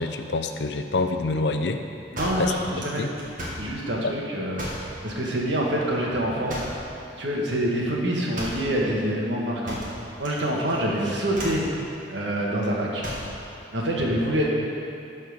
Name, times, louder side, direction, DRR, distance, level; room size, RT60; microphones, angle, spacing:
voice 1, 0.0-1.8 2.4-2.5 3.0-3.1 4.0-4.1, left 3 dB, 65° left, 7 dB, 0.5 m, -26 dB
voice 2, 2.1-3.0 3.6-4.6 5.0-6.6 7.2-9.9 10.2-11.6 12.1-13.0 13.7-14.5, right 1 dB, 75° right, -3 dB, 1.7 m, -26 dB
sound 1, 2.2-3.7 4.6-4.9 6.5-6.9 8.3-8.7 9.7-10.4 10.7-11.0 11.3-11.7 13.0-13.4, equal, 45° right, 1.7 m, -34 dB
12.5 x 4.3 x 6.5 m, 2.6 s
head